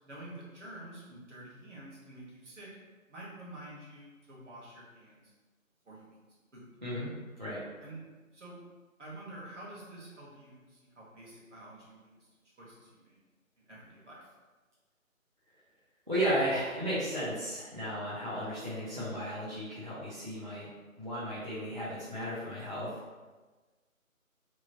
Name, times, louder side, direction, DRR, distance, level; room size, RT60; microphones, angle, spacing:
voice 1, 0.0-2.8 3.1-5.3 5.8-6.2 6.5-6.6 7.8-8.0 8.3-8.6 9.0-12.2 12.6-13.2 13.6-14.3, right 1 dB, 55° right, -6 dB, 1.1 m, -48 dB
voice 2, 6.8-7.6 16.1-20.7 21.0-22.9, equal, 35° right, -11 dB, 0.5 m, -34 dB
2.9 x 2.2 x 2.7 m, 1.3 s
figure-of-eight pair, 160°, 42 cm